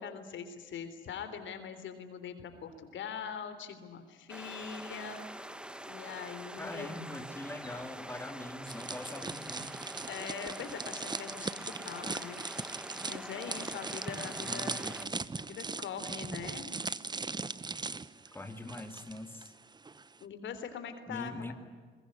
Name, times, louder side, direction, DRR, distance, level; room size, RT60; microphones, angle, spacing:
voice 1, 0.0-5.3 5.9-6.9 10.1-12.7 13.0-15.0 15.4-16.8 20.2-21.5, left 7 dB, 70° left, 9 dB, 3.5 m, -42 dB
sound 1, 4.3-15.1, right 1 dB, 5° right, 1.5 m, -45 dB
voice 2, 6.6-9.8 14.4-15.0 18.3-19.5 21.1-21.5, left 2 dB, 10° left, 6 dB, 2.2 m, -42 dB
sound 2, 8.7-19.5 19.7-20.0, right 4 dB, 20° right, 0.9 m, -39 dB
23.0 x 21.0 x 9.8 m, 1.5 s
cardioid pair, 90°, 20 cm